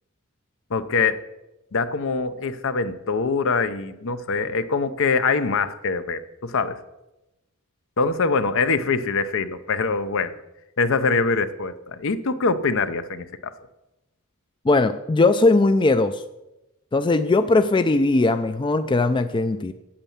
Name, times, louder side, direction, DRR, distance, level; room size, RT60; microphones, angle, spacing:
voice 1, 0.7-1.2 1.7-6.8 8.0-10.4 10.8-13.5, left 4 dB, 60° left, 12 dB, 0.7 m, -24 dB
voice 2, 14.7-16.2 16.9-19.7, left 2 dB, 20° left, 10 dB, 0.4 m, -19 dB
8.7 x 8.3 x 7.2 m, 0.96 s
head